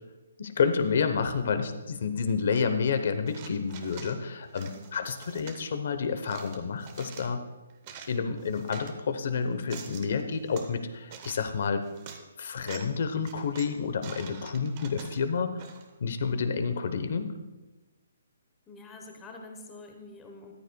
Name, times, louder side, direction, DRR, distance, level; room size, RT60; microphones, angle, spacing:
voice 1, 0.4-7.4 8.1-11.9 12.4-15.6 16.0-17.3, left 5 dB, 40° left, 9 dB, 0.8 m, -29 dB
sound 1, 3.3-4.2 4.5-5.6 6.2-7.3 7.7-8.9 9.5-10.7 11.1-11.5 11.9-12.2 12.6-13.0 13.2-15.9, right 7 dB, 20° right, 0.8 m, -46 dB
voice 2, 18.7-20.5, left 2 dB, 10° left, 2 dB, 0.9 m, -46 dB
14.0 x 13.5 x 2.3 m, 1.2 s
hypercardioid pair, 180°, 0 cm